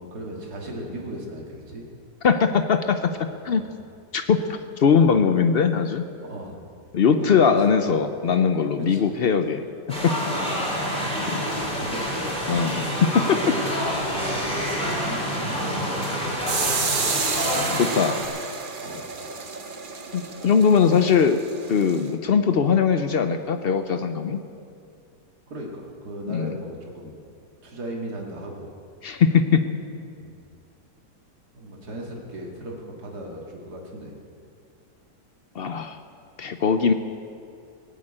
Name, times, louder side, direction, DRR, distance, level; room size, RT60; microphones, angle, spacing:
voice 1, 0.0-1.9 3.5-3.6 6.2-6.6 7.1-7.8 8.8-9.1 10.3-12.4 13.2-13.6 14.0-17.0 18.8-19.1 25.5-27.2 27.6-28.7 30.2-30.3 31.5-34.1, right 1 dB, 60° right, -1 dB, 2.7 m, -36 dB
voice 2, 2.2-3.7 4.1-6.0 6.9-9.6 10.0-10.1 11.3-11.4 12.5-13.5 17.7-18.2 20.1-21.4 21.7-24.4 26.3-26.6 29.0-29.6 35.5-36.0 36.4-36.9, left 6 dB, 70° left, 8 dB, 0.5 m, -20 dB
sound 1, 9.9-18.3, equal, 5° left, 3.9 m, -27 dB
sound 2, 16.5-22.1, right 5 dB, 40° right, 0.8 m, -30 dB
18.5 x 8.3 x 8.8 m, 2.4 s
omnidirectional pair, 1.9 m